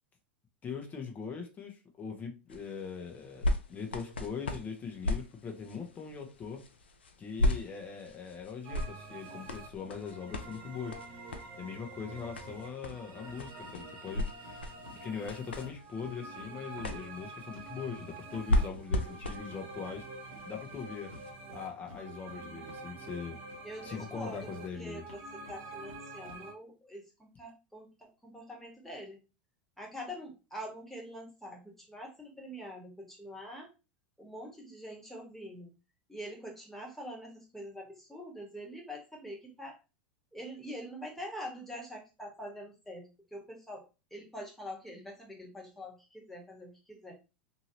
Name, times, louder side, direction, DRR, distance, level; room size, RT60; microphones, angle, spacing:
voice 1, 0.6-6.6 7.2-11.0 11.6-20.1 20.4-21.1 21.5-23.4 23.8-25.0, left 6 dB, 30° left, 0.9 m, -41 dB
sound 1, 2.5-21.3 22.0-22.1, left 1 dB, 85° left, 0.5 m, -37 dB
sound 2, 8.6-26.5, right 2 dB, 45° right, 1.0 m, -47 dB
sound 3, 11.3-11.4 11.7-11.8 12.1-15.0 15.2-23.6 23.9-26.4, left 2 dB, 70° left, 1.3 m, -54 dB
voice 2, 23.6-24.5 24.8-29.2 29.8-33.7 34.2-35.7 36.1-39.8 40.3-43.8 44.1-47.1, equal, 5° left, 1.4 m, -45 dB
2.8 x 2.7 x 2.8 m
hypercardioid pair, 95°, 6 cm